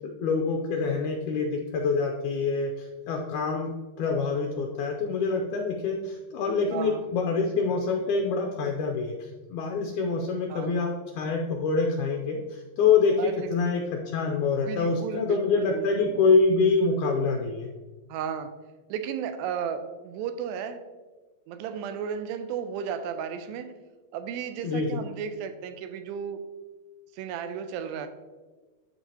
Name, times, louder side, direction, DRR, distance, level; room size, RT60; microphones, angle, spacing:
voice 1, 0.0-3.7 4.0-17.7 24.6-25.0, left 4 dB, 85° left, 1 dB, 1.8 m, -26 dB
voice 2, 6.7-7.0 10.5-10.8 13.2-13.5 14.6-16.2 18.1-18.5 18.9-20.8 21.5-23.7 24.1-26.4 27.1-28.1, right 7 dB, 85° right, 9 dB, 2.4 m, -34 dB
12.0 x 4.7 x 2.8 m, 1.3 s
omnidirectional pair, 4.2 m